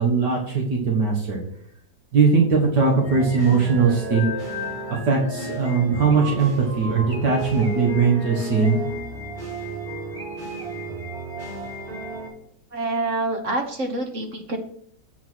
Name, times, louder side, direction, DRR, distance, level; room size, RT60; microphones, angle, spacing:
voice 1, 0.0-1.4 2.1-4.3 5.1-8.8, right 5 dB, 70° right, -1 dB, 2.0 m, -20 dB
sound 1, 3.0-12.3, right 1 dB, 30° right, 4.2 m, -32 dB
voice 2, 12.7-14.6, right 2 dB, 45° right, 3 dB, 1.4 m, -26 dB
8.2 x 4.8 x 6.1 m, 0.67 s
omnidirectional pair, 1.9 m